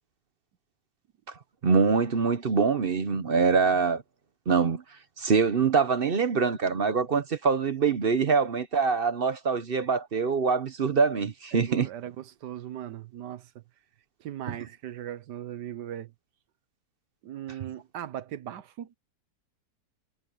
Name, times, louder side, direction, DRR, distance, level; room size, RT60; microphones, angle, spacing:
voice 1, 1.6-4.0 4.5-4.8 5.2-11.9, right 5 dB, 45° right, 0.8 m, -24 dB
voice 2, 11.5-13.6 14.2-16.1 17.2-18.9, right 11 dB, 85° right, 1.5 m, -38 dB
omnidirectional pair, 1.8 m